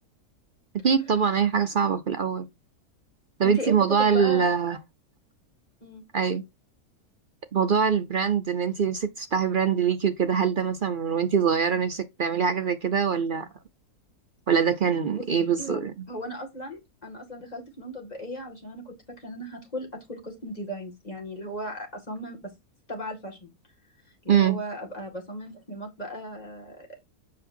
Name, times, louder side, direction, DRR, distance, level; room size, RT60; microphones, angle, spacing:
voice 1, 0.8-2.5 3.4-4.8 6.1-6.4 7.5-13.5 14.5-15.9 24.3-24.6, right 7 dB, 55° right, 0.6 m, -23 dB
voice 2, 3.4-4.5 5.8-6.0 15.1-15.3 15.6-15.8 16.1-22.5 22.9-23.5 24.2-26.9, equal, 25° left, 2.2 m, -37 dB
7.6 x 5.7 x 2.6 m
omnidirectional pair, 1.6 m